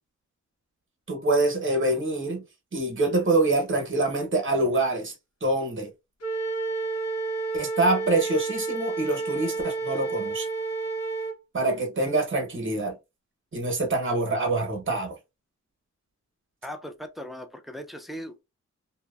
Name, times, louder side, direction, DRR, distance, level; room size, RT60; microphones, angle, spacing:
voice 1, 1.1-2.4 2.7-5.1 5.4-5.9 7.5-10.5 11.5-13.0 13.5-15.1, right 2 dB, 45° right, 0.9 m, -25 dB
Wind instrument woodwind instrument, 6.2-11.4, right 3 dB, 55° left, 0.8 m, -30 dB
voice 2, 16.6-18.4, equal, ahead, 0.4 m, -38 dB
2.8 x 2.1 x 2.3 m
wide cardioid pair, 110°, 29 cm